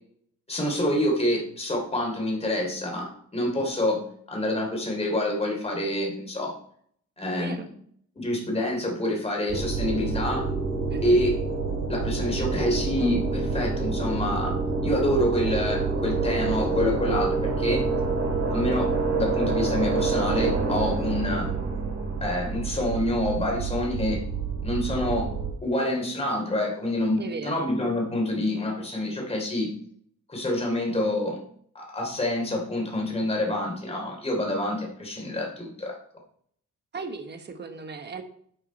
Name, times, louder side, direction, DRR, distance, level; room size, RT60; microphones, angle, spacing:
voice 1, 0.5-6.5 7.2-7.7 8.1-10.5 11.0-11.4 11.9-14.5 14.8-17.8 18.5-21.5 22.2-24.2 24.6-25.3 25.6-29.7 30.3-31.4 31.7-35.9, left 1 dB, 20° left, 0 dB, 3.1 m, -27 dB
voice 2, 7.3-7.7 10.9-11.2 27.2-27.7 36.9-38.2, right 4 dB, 35° right, 6 dB, 1.2 m, -36 dB
sound 1, 9.5-25.5, right 4 dB, 60° right, 2.6 m, -27 dB
11.0 x 6.0 x 4.2 m, 0.62 s
wide cardioid pair, 140°, 31 cm